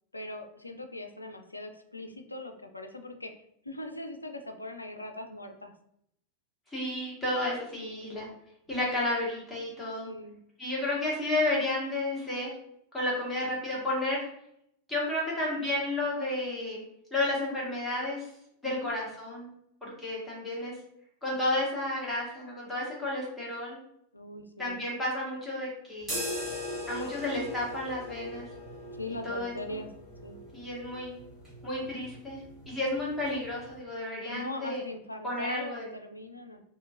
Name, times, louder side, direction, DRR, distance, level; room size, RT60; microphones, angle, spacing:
voice 1, 0.1-3.3 3.6-5.7 7.8-8.1 10.0-10.4 18.6-19.0 24.1-24.8 28.9-29.9 30.2-30.4 34.3-36.6, left 1 dB, 85° left, 6 dB, 0.3 m, -40 dB
voice 2, 6.7-8.3 8.7-10.1 10.6-12.5 12.9-14.2 14.9-16.8 17.1-18.2 18.6-19.5 19.8-20.8 21.2-23.8 24.6-26.3 26.9-28.5 29.2-29.5 30.5-31.2 31.6-34.8 35.2-35.9, left 1 dB, 5° left, -7 dB, 1.3 m, -32 dB
sound 1, 26.0-33.8, left 1 dB, 10° right, 1.4 m, -40 dB
2.8 x 2.6 x 2.4 m, 0.74 s
figure-of-eight pair, 90°, 0 cm